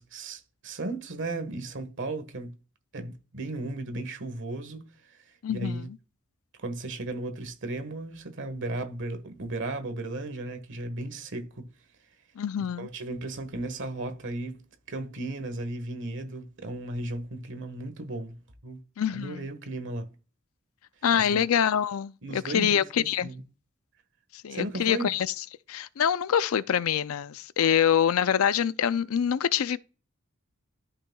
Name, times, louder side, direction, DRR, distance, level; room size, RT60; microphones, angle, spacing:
voice 1, 0.0-2.6 2.9-5.9 6.6-11.7 12.8-14.6 14.9-18.8 19.1-20.1 21.1-21.4 22.2-22.8 23.2-23.4 24.5-25.1, right 2 dB, 60° right, 1.5 m, -35 dB
voice 2, 5.4-6.0 12.4-12.9 19.0-19.5 21.0-23.3 24.3-25.3 25.7-29.8, left 8 dB, 70° left, 0.4 m, -25 dB
13.0 x 5.9 x 2.3 m
head